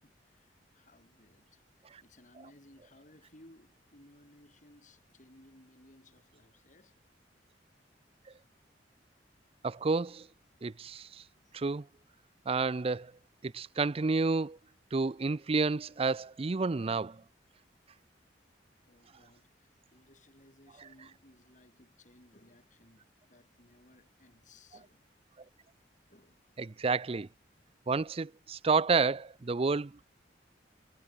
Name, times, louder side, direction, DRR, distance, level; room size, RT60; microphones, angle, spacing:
voice 1, 0.0-6.9 11.4-11.6 18.8-25.0 26.1-26.5, left 1 dB, 45° left, 6.8 m, -61 dB
voice 2, 9.6-10.3 10.6-11.2 11.5-11.8 12.5-13.1 13.4-14.6 14.9-17.2 26.6-27.3 27.9-30.0, right 4 dB, 30° right, 0.5 m, -30 dB
head